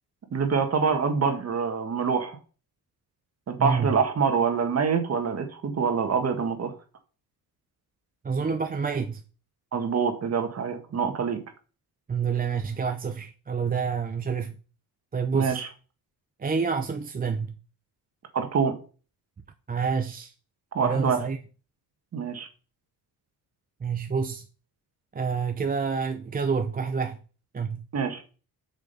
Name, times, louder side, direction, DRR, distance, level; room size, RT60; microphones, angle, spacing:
voice 1, 0.3-2.4 3.5-6.7 9.7-11.4 15.3-15.7 18.3-18.8 20.7-21.2 22.1-22.5 27.9-28.2, right 6 dB, 40° right, 1.7 m, -25 dB
voice 2, 3.6-4.0 8.2-9.2 12.1-14.6 15.1-15.6 16.4-17.6 19.7-20.3 20.8-21.4 23.8-24.5 25.1-27.2 27.5-27.9, right 5 dB, 20° right, 0.7 m, -28 dB
7.2 x 6.3 x 5.5 m
cardioid pair, 140°, 39 cm